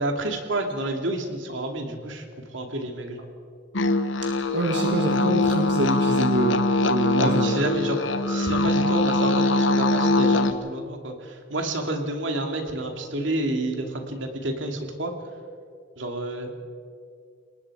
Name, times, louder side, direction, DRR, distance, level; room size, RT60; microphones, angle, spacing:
voice 1, 0.0-3.3 7.2-8.0 8.3-15.1 16.0-16.5, right 1 dB, 85° right, 4 dB, 2.5 m, -29 dB
sound 1, 3.7-10.5, left 2 dB, 85° left, 1.1 m, -22 dB
voice 2, 4.2-7.6, right 1 dB, 65° right, 2 dB, 1.8 m, -26 dB
29.0 x 19.0 x 4.9 m, 2.2 s
head